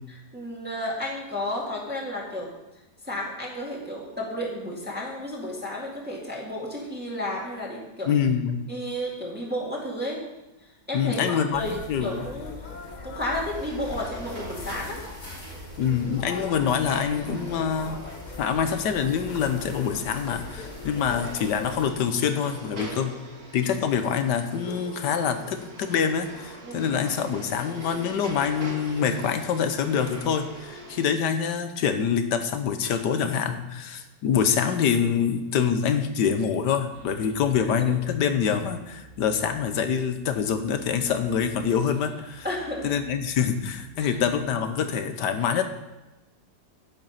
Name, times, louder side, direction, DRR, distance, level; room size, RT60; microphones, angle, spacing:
voice 1, 0.3-2.5 3.0-8.1 8.7-10.2 10.9-12.7 13.0-15.0 21.0-21.1 26.6-26.9 37.6-37.9 42.4-42.9 44.0-44.1, left 1 dB, 5° right, -3 dB, 1.9 m, -32 dB
voice 2, 8.1-8.6 10.9-12.2 15.8-18.0 18.4-23.1 23.5-42.4 42.8-45.6, left 7 dB, 80° left, 8 dB, 1.5 m, -25 dB
sound 1, 11.5-21.9, left 3 dB, 30° left, 0.9 m, -40 dB
sound 2, 13.5-31.0, right 2 dB, 60° right, 2.7 m, -43 dB
sound 3, 36.9-44.5, right 3 dB, 30° right, 2.3 m, -52 dB
9.2 x 7.8 x 5.7 m, 1.0 s
omnidirectional pair, 1.8 m